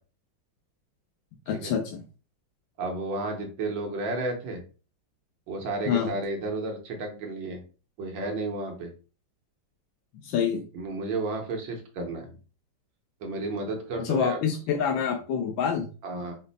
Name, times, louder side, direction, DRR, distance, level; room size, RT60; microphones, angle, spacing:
voice 1, 1.5-2.0 5.9-6.1 10.1-10.6 14.0-15.9, left 7 dB, 75° left, 2 dB, 1.4 m, -27 dB
voice 2, 2.8-4.6 5.5-7.6 8.0-8.9 10.7-12.4 13.2-14.4 16.0-16.4, right 2 dB, 75° right, 2 dB, 1.7 m, -32 dB
5.2 x 2.0 x 4.0 m, 0.36 s
omnidirectional pair, 2.1 m